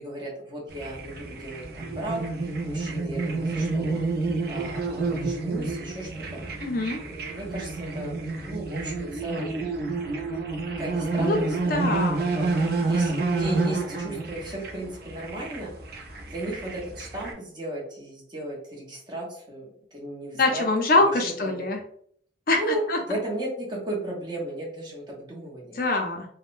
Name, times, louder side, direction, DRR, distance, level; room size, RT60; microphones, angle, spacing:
voice 1, 0.0-4.0 4.5-6.4 7.0-9.6 10.8-12.5 12.9-15.7 16.3-20.6 21.1-21.6 22.5-25.8, right 1 dB, 25° right, -3 dB, 0.8 m, -35 dB
sound 1, 0.7-17.3, right 3 dB, 55° right, 0.5 m, -29 dB
voice 2, 6.6-7.1 11.2-11.4 11.7-12.2 20.4-21.8 22.5-22.6 22.9-23.0 25.8-26.3, left 2 dB, 50° left, 4 dB, 0.4 m, -23 dB
3.5 x 2.0 x 2.5 m, 0.62 s
head